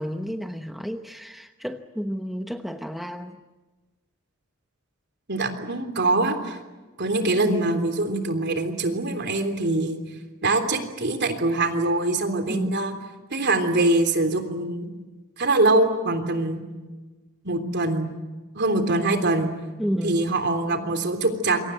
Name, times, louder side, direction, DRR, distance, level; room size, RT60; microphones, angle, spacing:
voice 1, 0.0-3.4 12.5-12.8 19.8-20.2, equal, ahead, 6 dB, 0.9 m, -31 dB
voice 2, 5.3-6.6 7.0-10.0 10.4-12.9 13.3-14.9 15.4-16.6 17.4-18.1 18.6-19.5 20.0-21.6, right 2 dB, 55° right, 6 dB, 3.4 m, -23 dB
27.5 x 23.5 x 7.8 m, 1.2 s
head